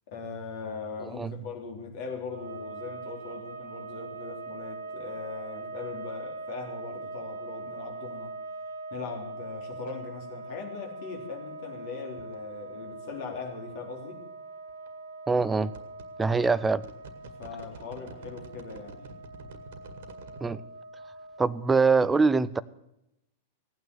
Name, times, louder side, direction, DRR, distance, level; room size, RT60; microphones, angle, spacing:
voice 1, 0.1-8.3 8.9-14.2 17.4-19.1, left 5 dB, 50° left, 1 dB, 3.6 m, -40 dB
voice 2, 1.0-1.3 15.3-15.7 16.2-16.8 20.4-20.6 21.4-22.6, right 4 dB, 10° right, 18 dB, 0.5 m, -23 dB
sound 1, 2.2-21.9, right 3 dB, 75° right, 1.4 m, -42 dB
sound 2, 12.2-12.3 14.7-14.9 15.4-20.5, right 4 dB, 55° right, 1.9 m, -47 dB
17.0 x 9.3 x 6.9 m, 0.85 s
figure-of-eight pair, 95°, 0 cm